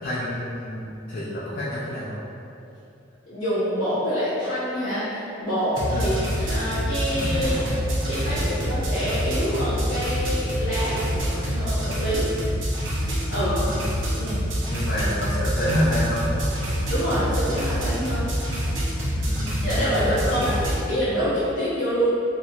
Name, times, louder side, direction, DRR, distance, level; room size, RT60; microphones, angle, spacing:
voice 1, 0.0-2.2 5.9-6.3 8.3-8.4 13.4-14.3 14.7-16.5 19.1-20.5, equal, 45° left, -8 dB, 0.4 m, -28 dB
voice 2, 3.3-7.6 8.0-11.1 11.4-12.3 13.3-13.6 14.2-14.4 16.9-18.3 19.6-20.0 20.3-20.5 20.9-22.1, equal, 80° left, -14 dB, 0.8 m, -26 dB
sound 1, 5.7-20.7, equal, 75° right, 0.7 m, -26 dB
sound 2, 7.2-8.1 11.0-12.1 12.7-12.9, right 1 dB, 25° right, 0.7 m, -34 dB
2.9 x 2.7 x 2.4 m, 2.7 s
head